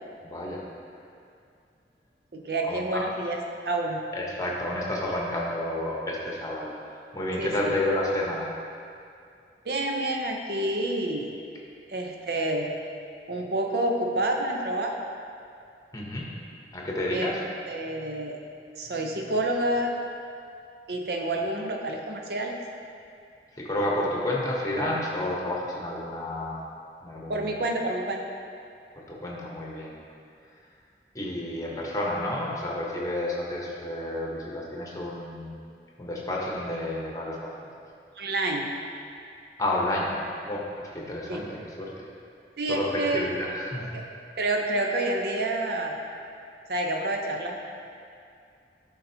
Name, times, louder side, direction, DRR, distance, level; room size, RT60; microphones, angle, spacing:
voice 1, 0.2-0.6 2.7-3.0 4.1-6.7 7.1-8.5 15.9-16.3 16.7-17.4 23.6-26.6 27.0-27.5 29.1-29.9 31.1-35.5 36.0-37.7 39.6-40.1 40.4-41.9 42.7-42.9 43.1-43.9, left 1 dB, 20° left, -3 dB, 0.9 m, -30 dB
voice 2, 2.3-3.4 3.6-4.0 7.4-7.7 9.6-11.3 11.9-12.7 13.3-14.9 17.1-17.3 17.7-18.4 18.8-19.9 20.9-22.5 27.3-28.2 38.2-38.7 41.3-41.4 42.6-43.3 43.9-44.0 44.4-46.0 46.7-47.6, right 1 dB, 65° right, 2 dB, 0.7 m, -28 dB
12.0 x 4.0 x 2.8 m, 2.4 s
head